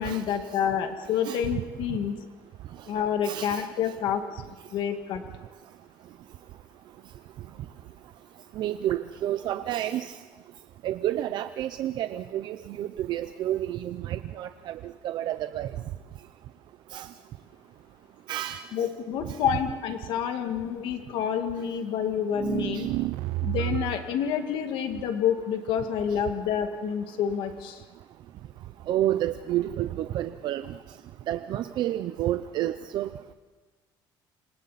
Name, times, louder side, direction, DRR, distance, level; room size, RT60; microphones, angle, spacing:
voice 1, 0.0-2.2 2.9-4.4 4.7-5.2 18.7-22.9 23.4-27.8, left 8 dB, 65° left, 6 dB, 1.9 m, -28 dB
voice 2, 3.3-3.7 8.6-10.1 10.8-15.7 16.9-17.1 18.3-18.7 19.3-19.4 22.7-22.9 28.9-30.7 31.3-33.1, right 12 dB, 55° right, 10 dB, 0.7 m, -30 dB
sound 1, 22.3-24.1, right 18 dB, 90° right, 0.6 m, -30 dB
29.0 x 26.5 x 4.2 m, 1.3 s
cardioid pair, 165°, 9 cm